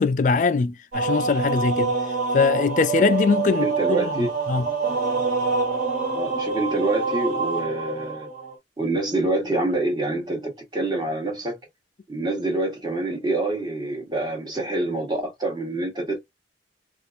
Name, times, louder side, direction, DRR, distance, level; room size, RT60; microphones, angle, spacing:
voice 1, 0.0-1.9 2.3-4.7, left 4 dB, 45° left, 0.3 m, -22 dB
sound 1, 0.9-8.5, right 4 dB, 50° right, 1.5 m, -26 dB
voice 2, 3.6-4.3 6.1-8.3 8.8-11.6 12.1-16.2, right 2 dB, 25° right, 1.1 m, -26 dB
4.2 x 2.4 x 2.4 m
head